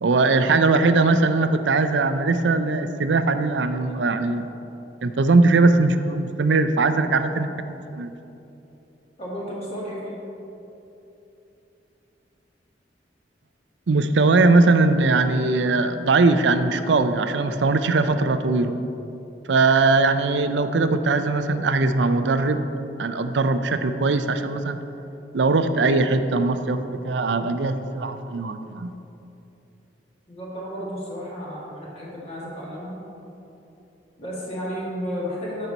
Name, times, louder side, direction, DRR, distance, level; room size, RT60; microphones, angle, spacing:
voice 1, 0.0-4.4 5.0-7.5 7.9-8.1 13.9-18.7 19.5-22.6 23.0-24.8 25.3-28.9, right 3 dB, 80° right, 9 dB, 0.5 m, -20 dB
voice 2, 9.2-10.2 30.3-33.0 34.2-35.7, equal, 35° left, -6 dB, 1.9 m, -32 dB
13.0 x 5.5 x 4.1 m, 2.9 s
head